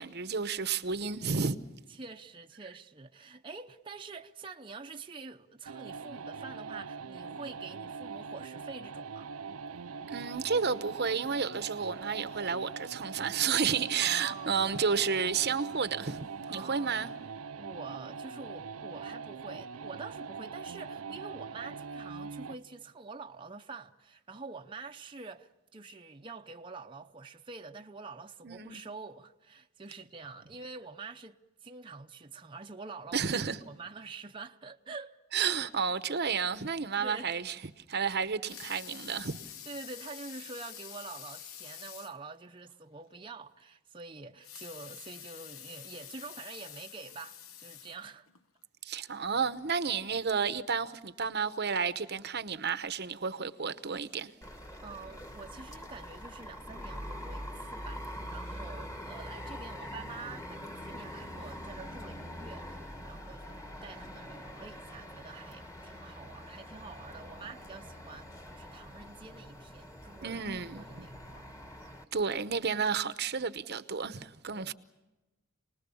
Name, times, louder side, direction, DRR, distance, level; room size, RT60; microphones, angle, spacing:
voice 1, 0.0-1.6 10.1-17.1 28.4-28.8 33.1-33.6 35.3-37.5 37.9-39.4 48.8-54.3 70.2-71.1 72.1-74.7, right 6 dB, 50° right, 0.9 m, -31 dB
voice 2, 1.9-9.3 14.0-14.9 16.5-17.1 17.6-35.2 37.0-37.3 39.7-48.3 54.8-70.4 70.7-71.5 74.5-74.7, right 4 dB, 25° right, 0.8 m, -47 dB
sound 1, 5.7-22.7, right 5 dB, 85° right, 0.7 m, -42 dB
Water tap faucet / Sink (filling or washing) / Liquid, 38.3-42.2 42.7-42.8 43.1-43.2 44.3-48.4 49.0-49.1, left 10 dB, 75° left, 1.0 m, -47 dB
sound 2, 54.4-72.0, equal, 15° left, 1.9 m, -44 dB
29.0 x 20.0 x 7.1 m
head